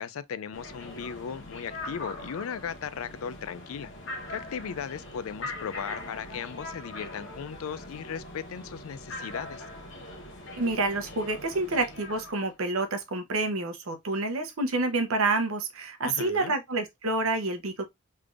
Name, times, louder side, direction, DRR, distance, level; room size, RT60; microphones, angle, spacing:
voice 1, 0.0-3.9 4.3-9.6 16.0-16.5, left 7 dB, 90° left, 0.4 m, -37 dB
sound 1, 0.5-12.5, left 1 dB, 60° left, 0.9 m, -41 dB
voice 2, 10.6-17.8, right 2 dB, 85° right, 0.8 m, -28 dB
3.4 x 3.3 x 2.4 m
head